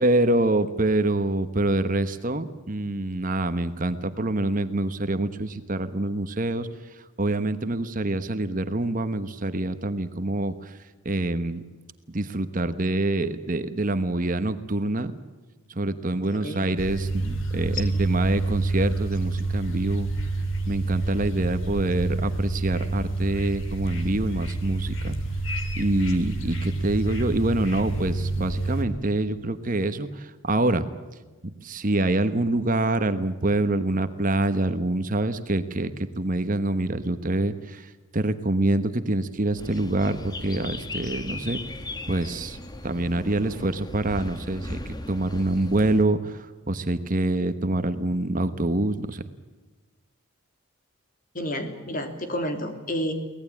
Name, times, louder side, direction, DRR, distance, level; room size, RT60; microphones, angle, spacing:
voice 1, 0.0-6.7 7.2-10.7 11.0-11.6 12.1-15.1 15.8-20.1 20.7-25.2 25.8-30.8 31.6-35.9 36.2-37.9 38.1-41.6 42.1-42.6 42.8-46.4 46.7-49.2, right 2 dB, 40° right, 10 dB, 1.1 m, -26 dB
voice 2, 16.3-16.6 17.9-18.0 51.3-53.1, equal, 40° left, 6 dB, 3.2 m, -30 dB
sound 1, 16.8-28.8, right 2 dB, 65° left, 3.5 m, -28 dB
sound 2, 39.6-46.0, left 2 dB, 20° left, 1.4 m, -37 dB
24.0 x 18.5 x 8.6 m, 1.2 s
head